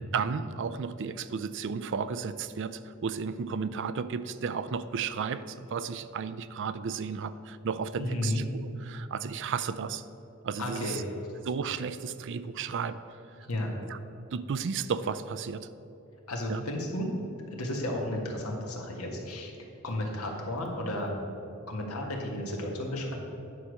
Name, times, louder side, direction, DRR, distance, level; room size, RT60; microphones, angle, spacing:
voice 1, 0.0-10.0 10.4-11.0 11.4-13.0 13.9-14.0 14.3-15.7 16.5-16.6, right 6 dB, 55° right, 13 dB, 0.4 m, -33 dB
voice 2, 7.9-8.4 10.6-11.0 13.4-13.7 16.3-17.1 17.6-19.5 19.8-21.1 21.7-23.1, left 1 dB, 80° left, 0 dB, 1.6 m, -33 dB
10.0 x 4.9 x 6.4 m, 2.8 s
head